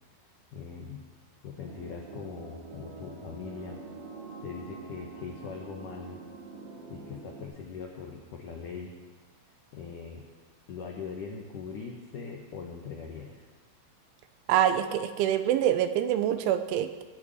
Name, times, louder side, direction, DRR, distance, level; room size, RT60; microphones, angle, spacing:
voice 1, 0.5-1.1 1.4-3.8 4.4-6.2 6.9-9.0 9.7-10.3 10.7-13.5, left 5 dB, 80° left, 1 dB, 1.9 m, -41 dB
sound 1, 1.6-7.4, right 4 dB, 60° right, 3.8 m, -45 dB
voice 2, 14.5-17.0, right 10 dB, 85° right, 10 dB, 3.2 m, -25 dB
19.5 x 6.7 x 9.0 m, 1.3 s
omnidirectional pair, 5.5 m